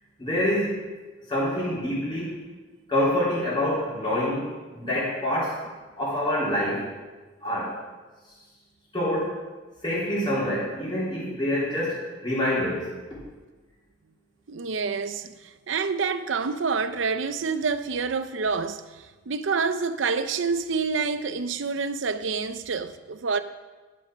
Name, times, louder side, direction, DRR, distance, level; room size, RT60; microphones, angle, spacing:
voice 1, 0.2-0.8 1.3-2.4 2.9-5.6 6.0-6.9 7.4-7.8 8.9-9.4 9.8-13.2, left 1 dB, 25° left, 3.5 m, -26 dB
voice 2, 14.5-23.4, right 5 dB, 75° right, 0.6 m, -28 dB
11.0 x 6.2 x 6.2 m
head